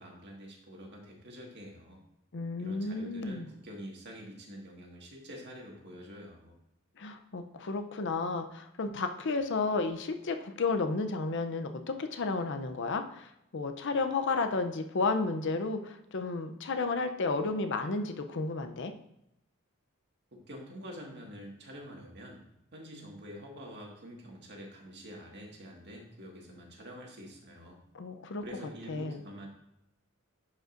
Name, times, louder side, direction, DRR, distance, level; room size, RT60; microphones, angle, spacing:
voice 1, 0.0-2.0 2.6-6.5 20.3-22.4 22.7-27.8 28.4-29.5, equal, 55° right, -1 dB, 1.8 m, -47 dB
voice 2, 2.3-3.5 7.0-18.9 27.9-28.4 28.9-29.2, left 3 dB, 60° left, 7 dB, 0.6 m, -32 dB
11.0 x 5.2 x 2.6 m, 0.82 s
head